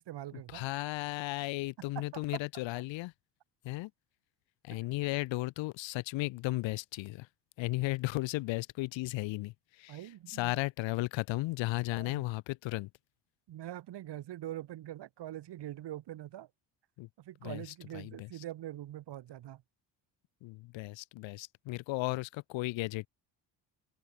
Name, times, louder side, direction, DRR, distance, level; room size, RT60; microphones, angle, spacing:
voice 1, 0.0-0.7 1.9-2.4 9.9-10.6 11.9-12.2 13.5-16.5 17.2-19.6, right 13 dB, 65° right, 2.9 m, -43 dB
voice 2, 0.5-3.1 3.6-3.9 4.6-7.3 7.6-10.0 10.3-12.9 17.0-17.1 17.4-17.6 17.9-18.3 20.4-23.1, left 20 dB, 85° left, 1.6 m, -35 dB
cardioid pair, 90°, 44 cm